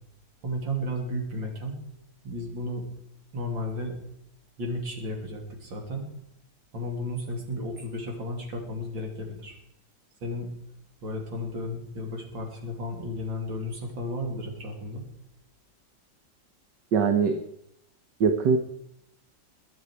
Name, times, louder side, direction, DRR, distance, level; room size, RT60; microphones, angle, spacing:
voice 1, 0.4-1.8 2.2-2.9 3.3-4.0 4.6-6.1 6.7-9.6 10.2-10.5 11.0-15.1, left 1 dB, 90° right, 1 dB, 3.6 m, -33 dB
voice 2, 16.9-17.4 18.2-18.6, right 5 dB, 70° right, 7 dB, 1.6 m, -22 dB
22.5 x 9.8 x 4.8 m, 0.78 s
omnidirectional pair, 2.0 m